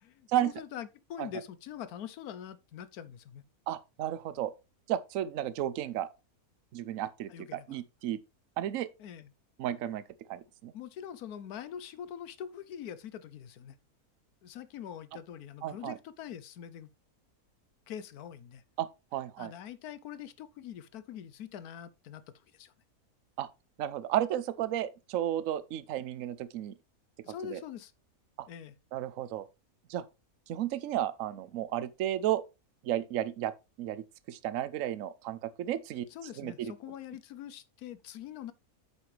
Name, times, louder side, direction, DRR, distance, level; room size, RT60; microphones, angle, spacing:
voice 1, 0.0-3.4 7.3-7.8 9.0-9.3 10.7-13.8 14.4-16.9 17.9-18.6 19.4-22.2 22.5-22.7 27.2-27.9 28.5-28.7 36.1-38.5, left 9 dB, 85° left, 1.2 m, -44 dB
voice 2, 3.7-4.5 4.9-6.1 6.7-8.2 8.6-8.9 9.6-10.0 10.3-10.7 15.6-16.0 18.8-18.9 19.1-19.5 23.4-23.5 23.8-26.7 27.3-27.6 28.4-28.5 28.9-29.4 29.9-30.0 30.5-32.4 32.8-33.5 33.8-36.1 36.4-36.7, right 12 dB, 65° right, 1.0 m, -33 dB
8.7 x 6.9 x 3.3 m
omnidirectional pair, 1.6 m